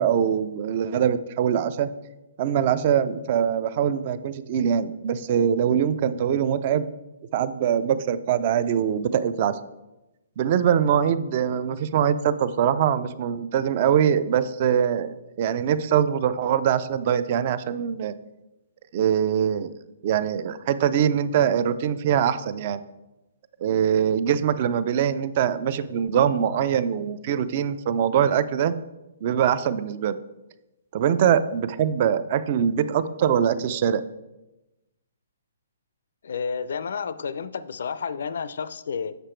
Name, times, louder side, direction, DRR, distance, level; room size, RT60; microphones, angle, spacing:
voice 1, 0.0-1.9 2.4-6.9 7.3-9.6 10.4-18.1 18.9-19.7 20.0-22.8 23.6-28.7 29.2-30.2 30.9-34.0, right 8 dB, 30° right, 14 dB, 0.3 m, -23 dB
voice 2, 36.2-39.2, left 6 dB, 60° left, 15 dB, 0.4 m, -31 dB
6.8 x 6.6 x 4.4 m, 0.99 s
hypercardioid pair, 175°, 0 cm